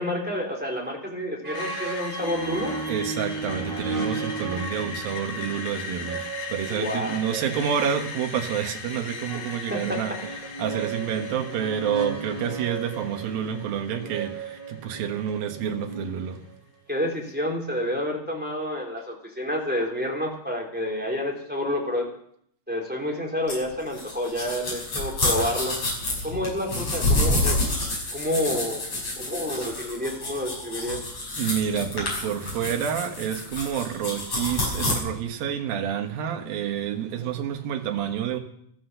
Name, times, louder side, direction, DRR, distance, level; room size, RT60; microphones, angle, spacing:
voice 1, 0.0-2.7 6.7-7.2 9.7-10.0 16.9-22.1 22.7-25.8 26.2-27.6 28.1-28.8 29.2-31.0 37.2-37.3, left 1 dB, 5° right, 2.8 m, -29 dB
sound 1, 1.4-8.1 9.2-16.6, right 4 dB, 45° right, 0.6 m, -35 dB
Screech, 1.5-15.5, left 5 dB, 80° left, 4.9 m, -39 dB
voice 2, 2.9-10.3 10.6-16.4 31.4-38.4, right 8 dB, 75° right, 3.1 m, -29 dB
sound 2, 23.5-34.9, left 2 dB, 35° left, 6.5 m, -28 dB
14.0 x 14.0 x 6.7 m
omnidirectional pair, 4.3 m